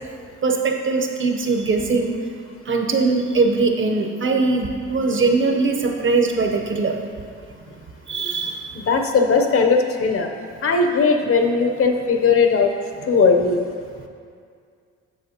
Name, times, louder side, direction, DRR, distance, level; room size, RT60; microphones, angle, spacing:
voice 1, 0.4-2.1 2.7-7.0 8.1-8.7, right 3 dB, 40° right, 3 dB, 0.9 m, -21 dB
voice 2, 8.9-10.3 10.6-12.7 13.1-13.6, left 4 dB, 45° left, 4 dB, 0.8 m, -18 dB
8.2 x 6.9 x 2.9 m, 2.2 s
cardioid pair, 90°, 30 cm